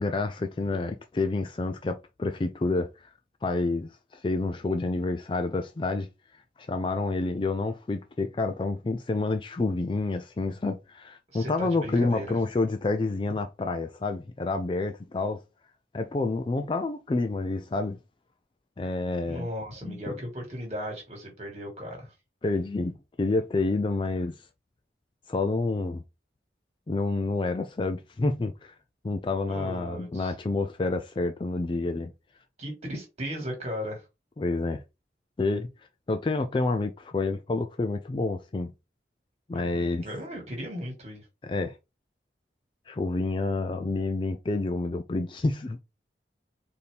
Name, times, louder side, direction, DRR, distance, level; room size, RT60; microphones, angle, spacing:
voice 1, 0.0-2.9 3.4-6.1 6.6-15.4 15.9-18.0 18.8-19.5 19.8-20.0 22.4-22.9 23.2-24.3 25.3-26.0 26.9-28.7 29.0-32.1 34.4-34.8 35.4-35.7 36.1-38.7 39.5-40.0 41.4-41.8 42.9-45.8, left 3 dB, 25° left, 0.3 m, -28 dB
voice 2, 11.3-12.4 19.3-22.1 29.5-30.3 32.6-34.1 39.5-41.3, equal, 35° right, 1.8 m, -36 dB
4.2 x 2.8 x 3.3 m
head